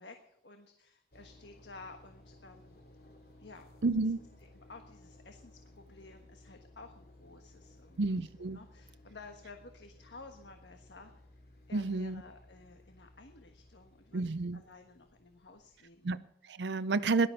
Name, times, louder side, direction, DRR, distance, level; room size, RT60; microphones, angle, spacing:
voice 1, 0.0-2.8 3.4-3.7 4.0-4.1 4.4-11.1 11.7-16.1, left 3 dB, 85° left, 5 dB, 1.4 m, -53 dB
sound 1, 1.1-16.2, left 1 dB, 55° left, 3.0 m, -59 dB
voice 2, 3.8-4.2 8.0-8.6 11.7-12.2 14.1-14.6 16.0-17.3, right 3 dB, 80° right, 12 dB, 0.6 m, -31 dB
18.0 x 12.0 x 5.7 m, 0.82 s
head